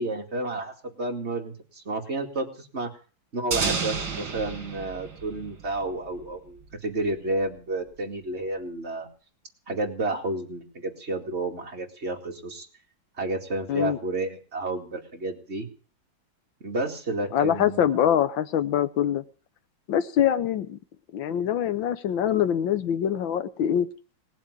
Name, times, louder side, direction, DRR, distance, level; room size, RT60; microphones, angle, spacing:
voice 1, 0.0-2.9 3.3-9.1 9.7-12.7 13.2-15.7 16.6-18.1, right 2 dB, 30° right, 1 dB, 2.6 m, -31 dB
sound 1, 3.5-6.3, right 5 dB, 65° right, 3.0 m, -31 dB
voice 2, 17.3-19.2 19.9-20.8 21.1-23.9, left 10 dB, 70° left, 12 dB, 1.7 m, -24 dB
19.0 x 7.5 x 9.7 m, 0.40 s
omnidirectional pair, 2.2 m